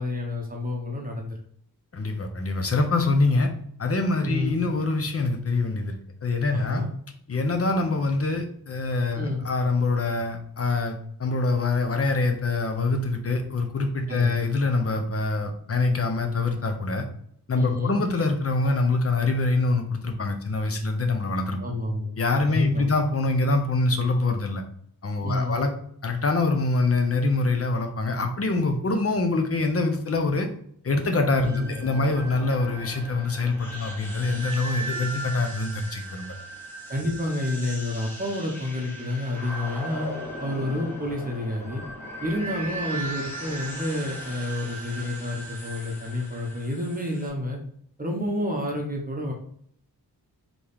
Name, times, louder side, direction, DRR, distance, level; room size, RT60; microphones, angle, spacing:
voice 1, 0.0-1.4 4.2-4.6 6.5-6.9 9.1-9.4 14.1-14.5 17.6-18.0 21.6-22.1 22.5-22.9 25.2-25.6 31.4-31.6 36.9-40.1 40.4-41.8 42.2-47.6 48.0-49.3, left 1 dB, 20° right, -1 dB, 0.8 m, -29 dB
voice 2, 1.9-3.5 3.8-6.8 7.3-17.1 17.5-21.6 22.2-24.6 25.0-25.7 26.0-30.5 30.8-36.4, left 3 dB, 35° left, 5 dB, 0.7 m, -25 dB
sound 1, 31.3-47.3, right 1 dB, 5° left, 1.3 m, -37 dB
4.1 x 3.1 x 3.5 m, 0.65 s
wide cardioid pair, 120°, 39 cm